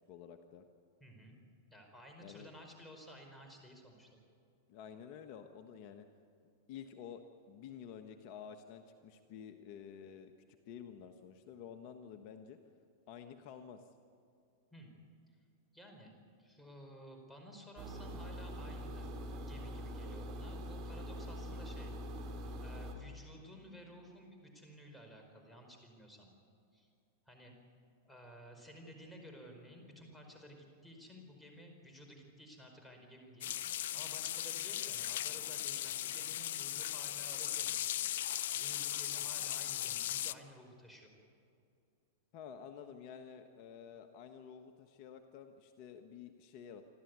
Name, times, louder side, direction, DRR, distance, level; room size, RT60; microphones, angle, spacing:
voice 1, 0.1-0.6 2.2-2.5 4.7-6.1 6.7-10.3 10.6-12.6 13.1-13.9 42.3-46.8, left 8 dB, 50° left, 6 dB, 1.3 m, -50 dB
voice 2, 1.0-1.4 1.7-4.2 14.7-14.9 15.7-16.1 16.4-19.1 19.4-22.3 22.6-26.3 26.7-26.9 27.3-27.5 28.0-37.8 38.5-41.1, equal, 5° left, 2 dB, 4.9 m, -54 dB
sound 1, 17.8-22.9, equal, 40° right, 3.6 m, -43 dB
sound 2, 33.4-40.3, left 12 dB, 70° left, 0.7 m, -38 dB
27.0 x 13.0 x 9.6 m, 2.5 s
hypercardioid pair, 125°, 0 cm